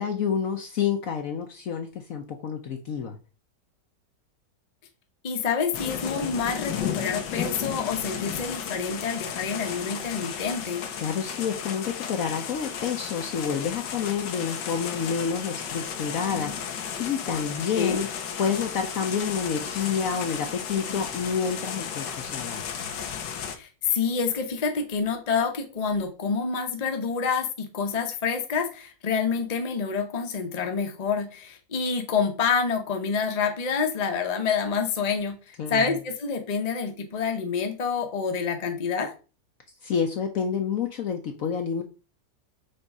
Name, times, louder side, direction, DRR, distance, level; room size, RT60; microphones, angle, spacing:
voice 1, 0.0-3.2 11.0-18.1 18.4-22.9 35.6-36.0 39.8-41.8, left 7 dB, 60° left, 5 dB, 1.0 m, -29 dB
voice 2, 5.2-10.8 17.7-18.0 23.5-39.1, left 5 dB, 30° left, 4 dB, 0.7 m, -27 dB
sound 1, 5.7-23.6, left 8 dB, 90° left, 1.5 m, -34 dB
5.3 x 3.5 x 5.3 m, 0.34 s
omnidirectional pair, 1.9 m